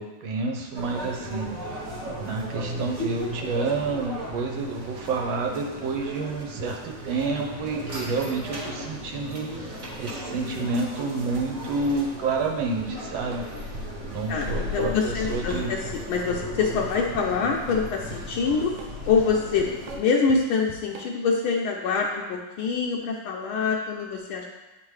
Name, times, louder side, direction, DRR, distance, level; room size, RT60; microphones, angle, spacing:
voice 1, 0.0-1.5 2.1-13.4 14.0-15.7, right 3 dB, 70° right, 2 dB, 1.4 m, -29 dB
sound 1, 0.7-20.0, equal, 45° right, 1.3 m, -35 dB
Drum kit / Drum, 12.8-21.4, right 4 dB, 90° right, 1.5 m, -44 dB
voice 2, 14.3-18.7 19.0-24.4, left 5 dB, 80° left, -1 dB, 1.4 m, -25 dB
9.0 x 3.7 x 3.2 m, 1.1 s
omnidirectional pair, 2.4 m